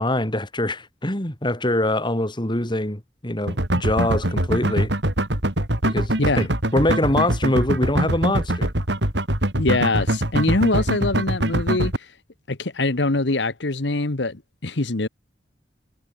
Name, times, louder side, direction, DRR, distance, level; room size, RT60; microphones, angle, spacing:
voice 1, 0.0-4.9 5.8-6.5 6.7-8.7, left 1 dB, 25° left, 3.9 m, -23 dB
sound 1, 3.5-12.0, right 1 dB, 75° right, 4.3 m, -23 dB
voice 2, 9.6-12.1 12.5-15.1, left 2 dB, 80° left, 1.5 m, -23 dB
head